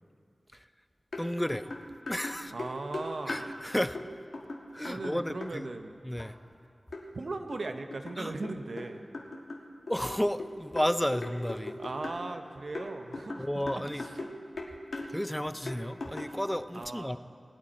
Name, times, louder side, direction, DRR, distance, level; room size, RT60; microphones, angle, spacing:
sound 1, 1.1-1.3 1.5-3.5 3.9-4.1 4.3-5.5 6.2-6.3 6.9-7.0 7.5-8.9 9.1-12.2 12.7-14.3 14.6-15.1 15.7-16.4, left 2 dB, 80° left, 1.5 m, -39 dB
voice 1, 1.2-1.7 2.1-2.5 3.3-4.0 4.7-5.7 6.0-6.3 8.2-8.3 9.9-11.8 13.4-14.0 15.1-17.2, equal, 10° left, 12 dB, 0.4 m, -32 dB
voice 2, 2.5-3.4 4.9-6.0 7.1-9.0 11.8-13.5 14.0-14.3 16.7-17.2, right 2 dB, 70° right, 6 dB, 0.7 m, -38 dB
19.5 x 8.9 x 4.2 m, 2.3 s
wide cardioid pair, 70°, 0 cm